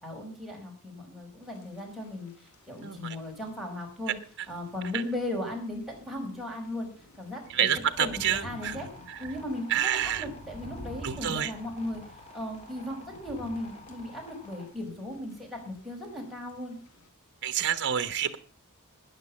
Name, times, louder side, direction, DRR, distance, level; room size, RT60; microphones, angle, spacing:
voice 1, 0.0-2.3 2.7-4.2 4.5-6.9 7.2-7.7 8.0-8.9 9.2-12.0 12.3-16.8, left 1 dB, ahead, -2 dB, 5.2 m, -37 dB
Thunder / Rain, 1.4-17.1, equal, 80° left, 2.8 m, -51 dB
voice 2, 2.8-3.1 7.5-8.7 9.1-9.2 9.7-10.2 11.0-11.5 17.4-18.4, right 9 dB, 55° right, 10 dB, 1.0 m, -28 dB
sound 1, 7.8-14.7, left 2 dB, 30° left, 3.9 m, -51 dB
13.5 x 9.7 x 7.2 m, 0.43 s
head